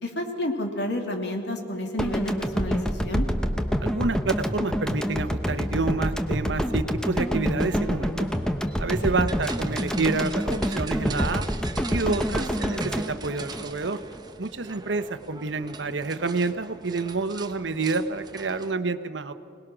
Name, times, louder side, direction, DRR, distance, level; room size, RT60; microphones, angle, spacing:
voice 1, 0.0-3.3 9.0-9.2, left 1 dB, 65° left, 3 dB, 2.8 m, -30 dB
sound 1, 2.0-14.2, equal, 5° left, 0.9 m, -27 dB
voice 2, 3.8-8.3 8.8-11.4 11.9-14.0 14.4-19.3, right 3 dB, 85° right, 11 dB, 1.0 m, -28 dB
sound 2, 7.6-18.7, right 4 dB, 25° right, 1.0 m, -41 dB
27.0 x 19.5 x 6.2 m, 2.4 s
head